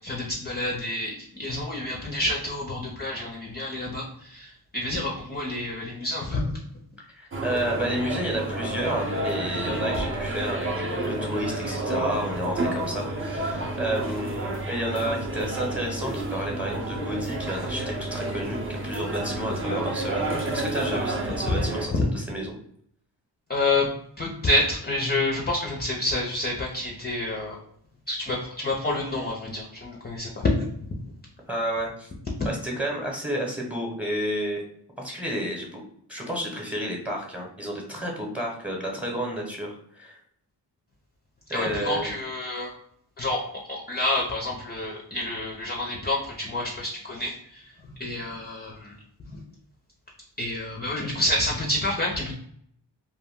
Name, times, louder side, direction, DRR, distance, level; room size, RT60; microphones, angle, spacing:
voice 1, 0.0-6.6 21.3-21.4 21.9-22.0 23.5-23.9 24.2-27.6 28.1-30.7 41.5-42.7 43.2-47.6 47.9-49.0 50.4-52.3, left 2 dB, 20° left, -1 dB, 0.5 m, -28 dB
voice 2, 7.1-22.6 31.5-32.1 32.4-34.6 35.0-35.8 36.1-40.2 41.5-42.1, equal, 5° right, 0 dB, 0.9 m, -31 dB
sound 1, 7.3-21.9, right 1 dB, 30° right, 0.7 m, -30 dB
2.4 x 2.1 x 3.5 m, 0.69 s
cardioid pair, 65°, 44 cm